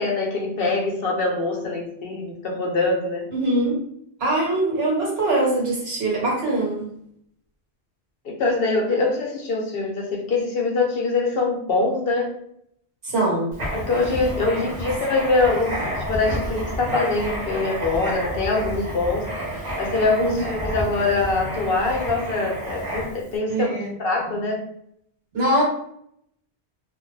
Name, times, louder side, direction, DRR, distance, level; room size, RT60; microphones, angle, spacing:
voice 1, 0.0-3.3 8.2-12.3 13.7-15.7 16.1-19.3 19.8-24.6, left 3 dB, 60° left, -1 dB, 0.8 m, -23 dB
voice 2, 3.3-3.8 4.2-6.8 13.0-13.5 20.2-20.5 23.5-23.9 25.3-25.6, right 1 dB, 65° right, -3 dB, 1.2 m, -22 dB
Writing, 13.5-23.3, equal, 40° right, 1.0 m, -30 dB
2.5 x 2.1 x 3.1 m, 0.71 s
omnidirectional pair, 1.1 m